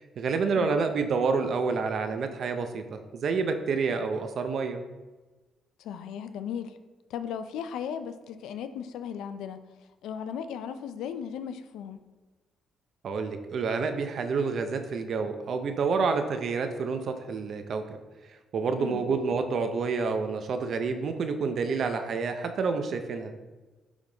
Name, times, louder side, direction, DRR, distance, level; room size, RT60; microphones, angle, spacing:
voice 1, 0.2-4.8 13.0-18.0 18.5-23.3, right 4 dB, 60° right, 7 dB, 0.6 m, -28 dB
voice 2, 5.8-6.8 7.1-9.7 10.0-12.0 18.8-19.0, left 8 dB, 85° left, 10 dB, 0.4 m, -36 dB
9.8 x 3.5 x 3.9 m, 1.2 s
cardioid pair, 90°, 0 cm